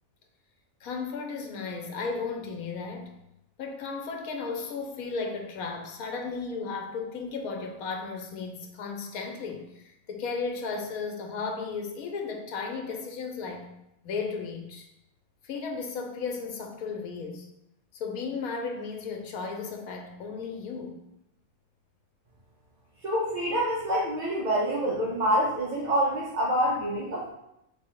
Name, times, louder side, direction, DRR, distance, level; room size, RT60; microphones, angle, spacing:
voice 1, 0.8-3.1 3.6-13.7 14.0-14.9 15.4-17.5 17.9-21.0, left 4 dB, 85° left, 3 dB, 1.1 m, -35 dB
voice 2, 23.0-27.3, equal, 40° right, -5 dB, 0.8 m, -26 dB
3.4 x 3.3 x 4.6 m, 0.82 s
omnidirectional pair, 1.5 m